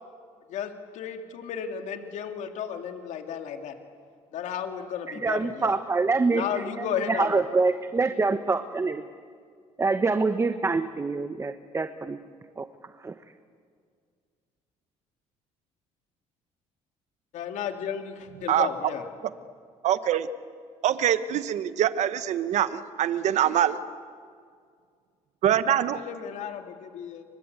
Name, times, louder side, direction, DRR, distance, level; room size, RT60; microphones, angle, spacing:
voice 1, 0.5-3.7 4.3-5.7 6.3-7.4 17.3-19.0 25.9-27.2, left 8 dB, 70° left, 5 dB, 2.6 m, -33 dB
voice 2, 5.1-9.0 9.8-12.2 12.6-12.7 13.0-13.1, right 3 dB, 20° right, 9 dB, 1.1 m, -26 dB
voice 3, 19.8-20.3 20.8-23.8 25.4-26.0, right 10 dB, 65° right, 12 dB, 1.4 m, -24 dB
29.5 x 24.0 x 8.2 m, 2.1 s
cardioid pair, 105°, 13 cm